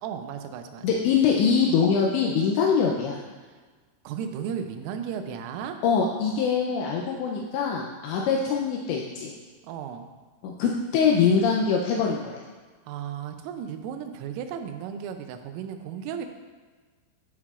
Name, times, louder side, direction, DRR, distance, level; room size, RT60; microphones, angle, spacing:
voice 1, 0.0-0.9 4.0-5.8 9.6-10.1 12.9-16.3, right 8 dB, 85° right, 7 dB, 3.3 m, -34 dB
voice 2, 0.8-3.2 5.8-9.3 10.4-12.2, left 6 dB, 90° left, -1 dB, 2.5 m, -23 dB
14.5 x 5.6 x 2.4 m, 1.4 s
omnidirectional pair, 5.9 m